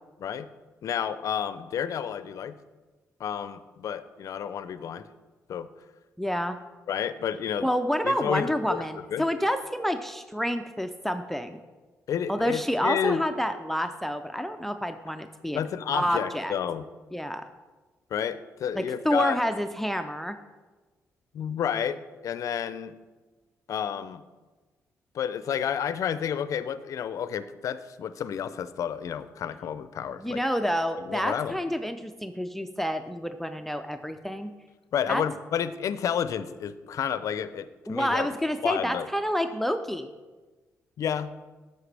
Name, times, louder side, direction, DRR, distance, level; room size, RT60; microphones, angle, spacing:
voice 1, 0.8-2.6 3.2-5.1 5.5-5.7 6.9-7.7 8.0-9.3 12.1-13.2 15.5-16.9 18.1-19.4 21.3-22.9 23.7-24.2 25.1-30.4 31.0-31.6 34.9-38.3 38.6-39.1 41.0-41.3, left 8 dB, 65° left, 14 dB, 0.4 m, -30 dB
voice 2, 6.2-6.6 7.6-11.6 12.3-15.6 15.9-16.5 17.1-17.4 18.8-20.4 30.2-34.5 35.1-35.2 37.9-40.1, equal, 5° left, 9 dB, 0.4 m, -28 dB
9.4 x 6.5 x 3.3 m, 1.3 s
cardioid pair, 75°, 6 cm